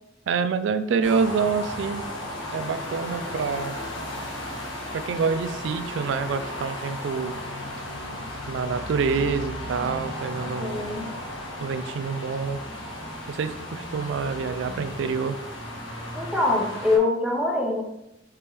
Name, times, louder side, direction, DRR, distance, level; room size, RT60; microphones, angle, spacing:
voice 1, 0.3-2.0 2.5-3.8 4.9-7.4 8.5-10.9 11.6-12.6 13.3-15.4, right 5 dB, 70° right, 11 dB, 0.3 m, -27 dB
sound 1, 1.0-17.0, left 1 dB, 65° left, 1.3 m, -35 dB
voice 2, 10.6-11.1 16.1-17.8, left 2 dB, 5° right, 0 dB, 0.6 m, -24 dB
4.4 x 3.4 x 3.4 m, 0.86 s
head